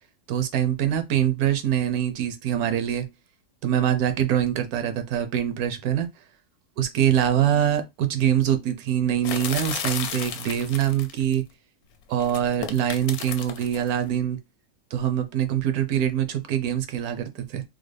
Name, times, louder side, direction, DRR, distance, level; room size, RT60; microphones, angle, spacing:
voice 1, 0.3-3.1 3.6-6.1 6.8-11.4 12.1-14.4 14.9-17.6, right 10 dB, 75° right, 1.1 m, -24 dB
sound 1, 9.2-11.3 12.2-13.9, left 8 dB, 75° left, 1.0 m, -33 dB
3.7 x 2.1 x 3.2 m
omnidirectional pair, 1.6 m